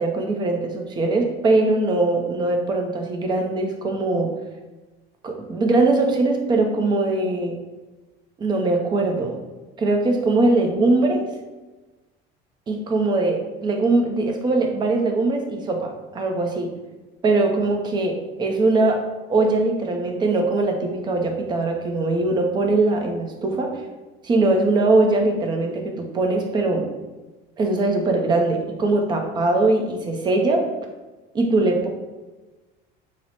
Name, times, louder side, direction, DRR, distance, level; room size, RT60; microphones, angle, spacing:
voice 1, 0.0-4.3 5.2-7.6 8.4-9.4 9.8-11.2 12.7-16.7 17.2-19.0 19.3-23.7 24.2-26.9 27.6-30.6 31.3-31.9, right 2 dB, 20° right, 3 dB, 0.5 m, -21 dB
4.5 x 2.0 x 4.1 m, 1.2 s
cardioid pair, 165°, 21 cm